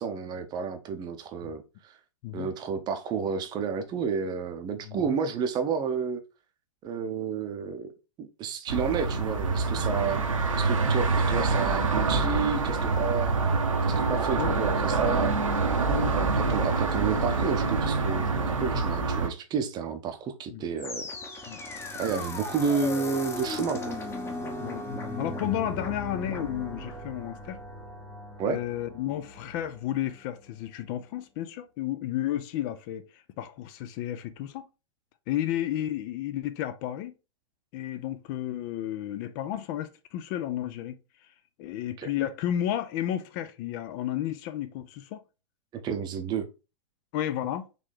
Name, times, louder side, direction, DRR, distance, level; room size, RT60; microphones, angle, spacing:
voice 1, 0.0-1.9 2.3-6.2 6.8-7.9 8.2-10.2 10.5-13.4 13.8-15.3 16.1-21.1 21.4-21.5 22.0-24.0 28.4-28.6 42.0-42.1 45.7-46.5, right 6 dB, 25° right, 0.7 m, -31 dB
voice 2, 4.9-5.2 14.4-14.5 15.9-16.1 16.4-16.6 20.5-20.6 21.5-21.6 24.6-24.9 25.2-27.6 28.5-34.6 35.3-37.1 37.7-41.0 41.6-45.2 47.1-47.6, left 12 dB, 40° left, 0.5 m, -32 dB
sound 1, 8.7-19.3, right 4 dB, 85° right, 0.8 m, -26 dB
sound 2, 20.8-29.9, left 2 dB, 15° left, 0.8 m, -37 dB
4.1 x 3.2 x 3.2 m
hypercardioid pair, 110°, 17 cm